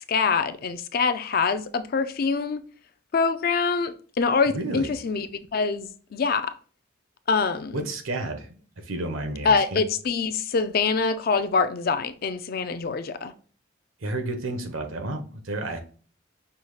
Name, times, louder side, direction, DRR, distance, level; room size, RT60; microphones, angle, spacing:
voice 1, 0.1-2.6 3.1-5.3 5.5-6.5 7.3-7.8 9.5-13.3, left 5 dB, 45° left, 0.4 m, -25 dB
voice 2, 4.5-4.9 7.7-9.8 14.0-15.8, right 2 dB, 80° right, 0.9 m, -31 dB
5.5 x 2.3 x 3.2 m
head